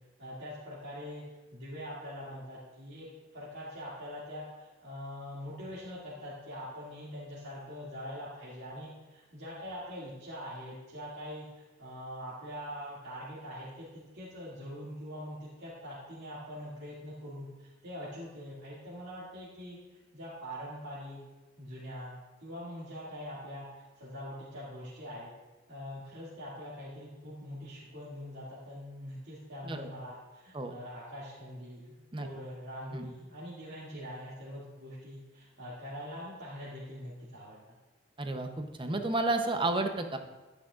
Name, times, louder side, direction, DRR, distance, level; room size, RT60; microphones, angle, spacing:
voice 1, 0.2-1.2 1.5-3.1 3.3-21.2 21.6-25.3 25.7-37.8, equal, 60° right, -9 dB, 2.4 m, -43 dB
voice 2, 38.2-40.2, right 2 dB, 25° right, 6 dB, 0.8 m, -31 dB
12.5 x 9.8 x 2.5 m, 1.2 s
head